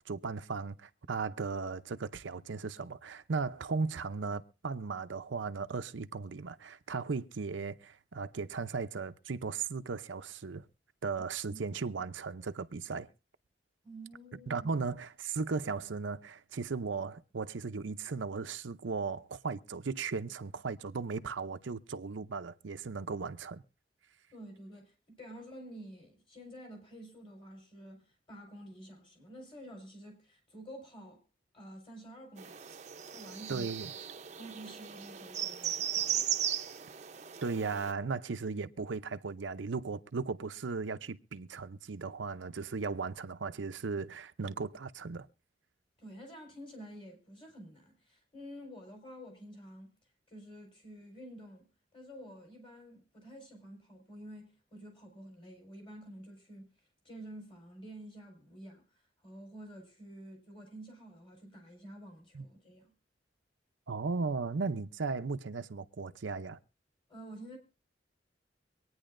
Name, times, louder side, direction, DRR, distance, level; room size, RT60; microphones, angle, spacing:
voice 1, 0.1-10.7 11.0-13.1 14.5-23.6 33.5-33.9 37.4-45.3 62.3-62.4 63.9-66.6, right 4 dB, 90° right, 0.6 m, -36 dB
voice 2, 13.8-14.7 24.3-31.2 31.5-32.7 33.1-33.7 34.4-36.3 46.0-49.9 50.3-51.7 51.9-56.7 57.0-62.9 67.1-67.6, right 1 dB, 30° left, 4.4 m, -50 dB
sound 1, 32.4-37.9, right 9 dB, 40° right, 0.7 m, -37 dB
24.0 x 9.5 x 2.6 m
head